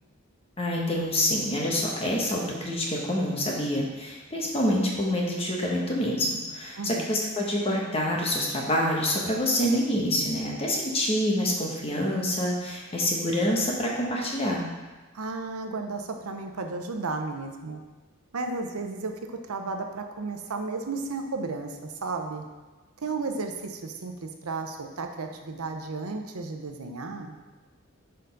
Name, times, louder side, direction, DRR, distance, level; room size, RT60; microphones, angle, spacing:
voice 1, 0.6-14.6, left 1 dB, 25° left, -2 dB, 1.0 m, -26 dB
voice 2, 6.8-7.1 15.1-17.8 18.3-22.4 23.0-27.4, right 3 dB, 85° right, 5 dB, 0.7 m, -33 dB
6.6 x 4.0 x 5.3 m, 1.3 s
head